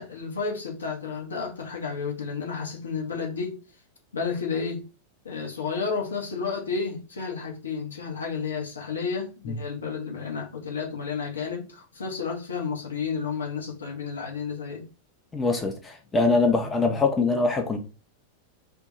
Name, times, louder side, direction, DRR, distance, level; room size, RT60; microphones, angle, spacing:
voice 1, 0.0-3.6 4.1-4.8 5.2-14.9, left 5 dB, 70° left, 0.7 m, -31 dB
voice 2, 15.3-17.8, left 3 dB, 15° left, 0.5 m, -23 dB
2.2 x 2.2 x 2.8 m
figure-of-eight pair, 90°, 0 cm